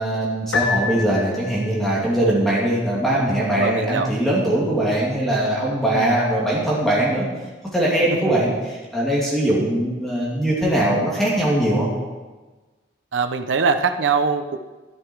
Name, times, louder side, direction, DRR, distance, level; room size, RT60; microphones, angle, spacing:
voice 1, 0.0-7.2 7.7-11.9, right 1 dB, ahead, -6 dB, 2.5 m, -21 dB
Piano, 0.5-1.8, left 5 dB, 85° left, 0.9 m, -26 dB
voice 2, 3.6-4.1 5.9-6.1 13.1-14.6, right 5 dB, 85° right, 8 dB, 0.6 m, -22 dB
12.0 x 10.5 x 4.6 m, 1.2 s
head